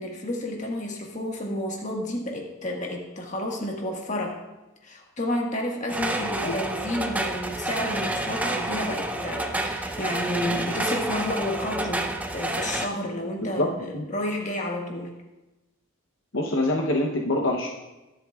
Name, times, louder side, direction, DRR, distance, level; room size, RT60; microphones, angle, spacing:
voice 1, 0.0-4.4 4.8-15.1, left 1 dB, 35° left, 0 dB, 1.6 m, -31 dB
sound 1, 5.9-12.9, right 1 dB, 5° right, 0.5 m, -29 dB
voice 2, 16.3-17.7, left 1 dB, 65° left, 0 dB, 0.9 m, -24 dB
21.0 x 7.8 x 2.4 m, 1.0 s
head